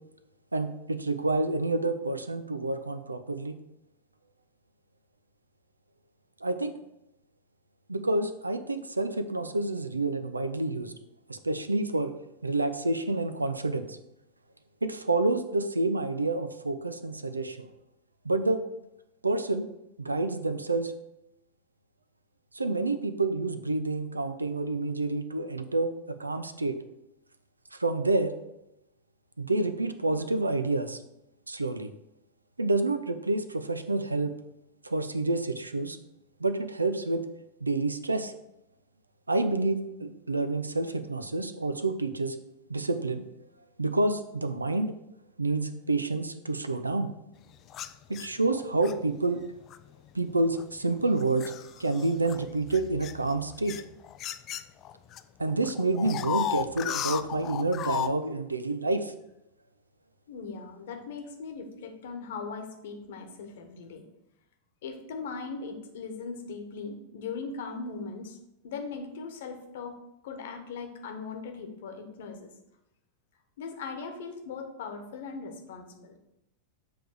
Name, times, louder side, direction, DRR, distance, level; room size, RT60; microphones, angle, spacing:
voice 1, 0.5-3.6 6.4-6.7 7.9-10.9 11.3-12.1 12.4-14.0 14.8-17.7 18.2-18.6 19.2-19.7 20.0-20.9 22.5-26.8 27.7-28.3 29.4-31.0 31.5-31.9 32.6-34.3 34.8-36.0 36.4-37.3 37.6-38.3 39.3-42.4 42.7-43.2 43.8-44.9 45.4-47.1 48.1-49.4 50.1-51.5 51.8-53.8 55.4-59.1, right 2 dB, 80° right, 10 dB, 0.5 m, -28 dB
sound 1, 47.7-48.9 49.7-49.9 50.6-55.2 55.5-58.1, left 10 dB, 35° left, 0.3 m, -35 dB
voice 2, 60.3-64.0 64.8-68.4 68.6-69.9 70.2-72.5 73.6-76.2, left 4 dB, 55° left, 4 dB, 1.1 m, -39 dB
7.6 x 3.4 x 6.2 m, 0.88 s
figure-of-eight pair, 90°, 0 cm